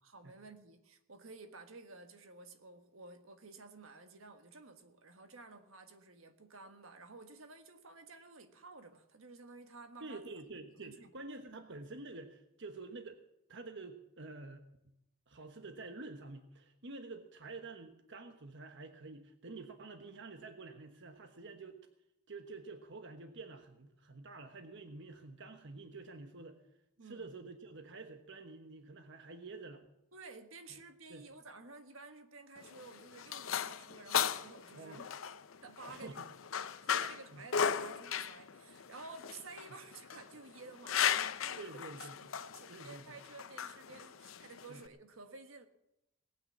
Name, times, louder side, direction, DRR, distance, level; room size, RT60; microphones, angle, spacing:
voice 1, 0.0-10.2 10.8-11.1 27.0-27.3 30.1-35.1 35.6-36.3 36.7-41.7 42.5-45.7, right 3 dB, 85° right, 1.5 m, -53 dB
voice 2, 10.0-13.1 13.5-15.0 15.3-21.8 22.3-26.6 27.0-29.9 31.1-31.3 34.7-35.0 35.9-36.3 37.0-37.5 41.6-42.2 42.7-43.0 44.7-44.8, right 3 dB, 65° right, 1.2 m, -49 dB
sound 1, 32.6-44.9, left 8 dB, 80° left, 0.7 m, -37 dB
18.5 x 9.2 x 7.3 m
head